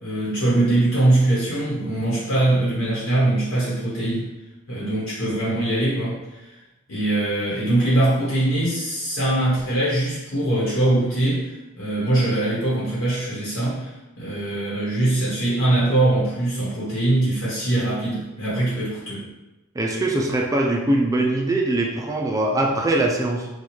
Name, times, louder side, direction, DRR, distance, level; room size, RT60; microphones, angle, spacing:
voice 1, 0.0-4.3 4.7-6.5 6.9-11.5 11.8-19.2, right 1 dB, 65° left, -8 dB, 1.1 m, -22 dB
voice 2, 19.8-23.5, right 2 dB, 15° right, 1 dB, 0.3 m, -22 dB
2.9 x 2.3 x 4.2 m, 1.0 s
head